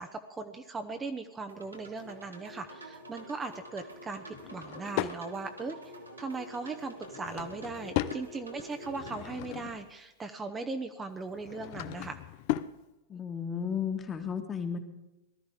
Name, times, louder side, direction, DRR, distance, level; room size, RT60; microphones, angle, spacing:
voice 1, 0.0-5.8 6.2-12.2, right 3 dB, 15° right, 6 dB, 1.0 m, -38 dB
sound 1, 1.5-9.2, right 1 dB, 90° right, 2.1 m, -47 dB
Drawer open or close / Wood, 4.3-5.2 6.9-8.2 8.8-9.9 11.3-12.8, left 14 dB, 50° left, 0.6 m, -36 dB
voice 2, 13.1-14.8, left 7 dB, 25° left, 5 dB, 1.9 m, -33 dB
19.0 x 13.0 x 5.0 m, 0.98 s
figure-of-eight pair, 95°, 0 cm